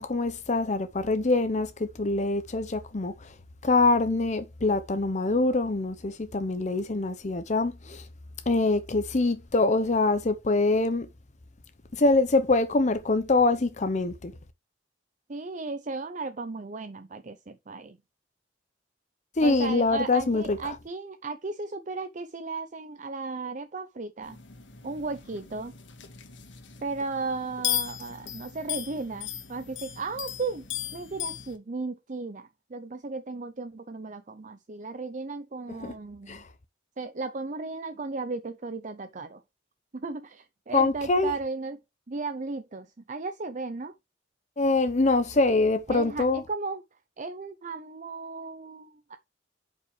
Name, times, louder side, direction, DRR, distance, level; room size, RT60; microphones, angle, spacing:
voice 1, 0.0-3.3 3.6-8.0 8.5-11.1 11.9-14.3 19.4-20.6 35.8-35.9 36.3-36.4 40.7-41.3 44.6-46.4, left 3 dB, 40° left, 0.7 m, -24 dB
voice 2, 15.3-18.0 19.4-24.4 24.8-25.7 26.8-36.4 37.0-39.4 39.9-41.8 42.1-43.9 45.9-46.8 47.2-49.2, right 3 dB, 40° right, 0.6 m, -35 dB
sound 1, 24.2-31.6, left 11 dB, 85° left, 1.7 m, -36 dB
8.7 x 5.5 x 3.2 m
head